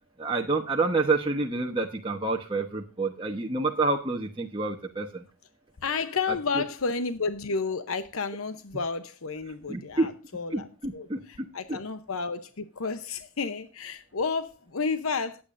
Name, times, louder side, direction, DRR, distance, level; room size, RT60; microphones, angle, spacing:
voice 1, 0.2-5.2 6.3-6.6 9.7-10.1 10.5-11.8, right 3 dB, 25° right, 1.1 m, -28 dB
voice 2, 5.8-10.7 10.9-15.4, left 4 dB, 85° left, 0.8 m, -31 dB
18.5 x 8.8 x 2.6 m
head